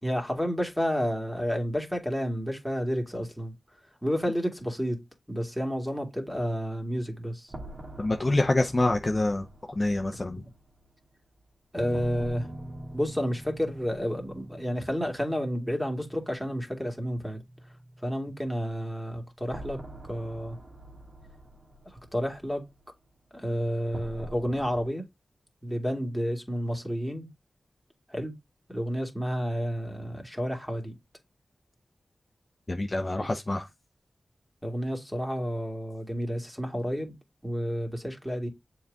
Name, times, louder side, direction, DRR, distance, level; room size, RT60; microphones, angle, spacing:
voice 1, 0.0-3.5 4.0-5.0 5.3-7.5 11.7-12.5 12.9-17.4 18.0-19.8 20.1-20.6 22.1-22.6 23.3-25.0 25.6-27.3 28.1-28.3 28.7-30.9 33.2-33.3 34.6-37.1 37.4-38.5, equal, ahead, 2.3 m, -30 dB
sound 1, 7.5-15.3 15.5-15.6 19.5-24.9, right 1 dB, 55° right, 1.6 m, -46 dB
voice 2, 8.0-9.4 9.8-10.4 32.7-33.7, left 2 dB, 35° left, 0.7 m, -26 dB
sound 2, 11.8-19.3, right 1 dB, 75° right, 2.1 m, -45 dB
6.9 x 4.0 x 3.5 m
wide cardioid pair, 65°, 0 cm